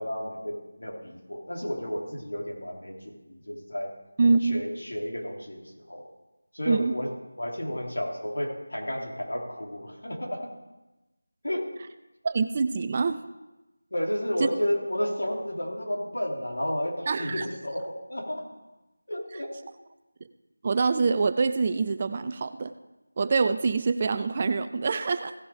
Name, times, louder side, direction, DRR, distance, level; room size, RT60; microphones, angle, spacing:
voice 1, 0.0-3.9 4.4-6.1 6.5-10.5 11.4-11.7 13.9-18.5 19.1-19.7, equal, 90° left, -1 dB, 3.0 m, -32 dB
voice 2, 4.2-4.6 6.7-6.9 12.2-13.2 14.4-14.5 17.1-17.5 20.6-22.7 23.2-25.3, right 4 dB, 20° right, 11 dB, 0.3 m, -25 dB
16.5 x 5.8 x 4.9 m, 1.0 s
figure-of-eight pair, 175°, 0 cm